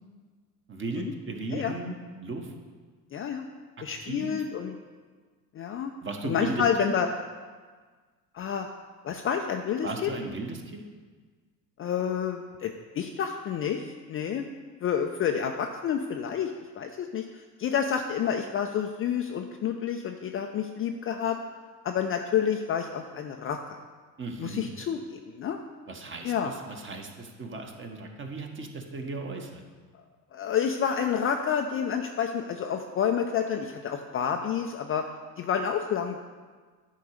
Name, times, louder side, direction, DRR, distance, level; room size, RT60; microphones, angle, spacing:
voice 1, 0.7-2.5 4.0-4.3 6.0-6.9 9.8-10.8 24.2-24.7 25.9-29.6, right 3 dB, 25° right, 3 dB, 1.4 m, -36 dB
voice 2, 3.1-3.4 3.8-4.7 5.5-5.9 6.2-7.1 8.3-8.7 9.0-10.1 11.8-13.8 14.1-14.4 14.8-16.5 16.8-21.4 21.8-23.8 24.4-25.0 25.3-25.6 26.2-26.5 30.3-35.0 35.4-36.2, left 8 dB, 25° left, 4 dB, 0.5 m, -29 dB
10.0 x 4.6 x 6.5 m, 1.5 s
hypercardioid pair, 80°, 50 cm